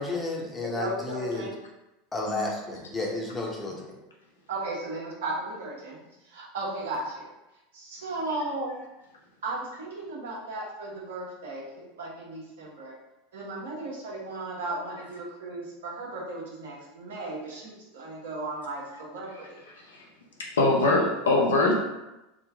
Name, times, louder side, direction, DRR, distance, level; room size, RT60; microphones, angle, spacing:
voice 1, 0.0-1.5 2.1-3.9, left 2 dB, 15° left, -2 dB, 0.9 m, -32 dB
voice 2, 0.6-1.5 2.3-2.4 4.5-6.0 6.3-7.3 7.7-8.8 9.4-12.9 13.3-19.6, right 2 dB, 65° right, -4 dB, 1.0 m, -35 dB
voice 3, 20.4-21.7, left 2 dB, 75° left, -1 dB, 0.7 m, -22 dB
3.8 x 2.2 x 3.4 m, 0.97 s
figure-of-eight pair, 80°, 0 cm